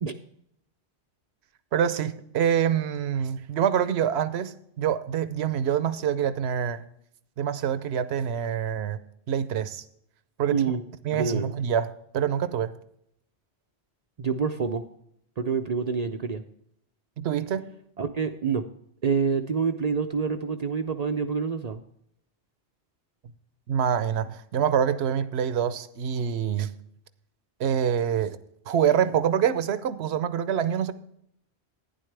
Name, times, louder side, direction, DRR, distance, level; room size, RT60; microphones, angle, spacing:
voice 1, 1.7-6.8 7.4-9.0 9.3-9.8 10.4-10.6 11.0-12.7 17.2-17.6 23.7-26.7 27.6-28.4 28.7-30.9, right 8 dB, 70° right, 13 dB, 0.9 m, -26 dB
voice 2, 10.5-10.8 11.1-11.5 14.2-14.8 15.4-16.4 18.0-18.6 19.0-21.8, right 5 dB, 50° right, 7 dB, 0.5 m, -27 dB
11.0 x 10.0 x 3.3 m, 0.73 s
omnidirectional pair, 1.1 m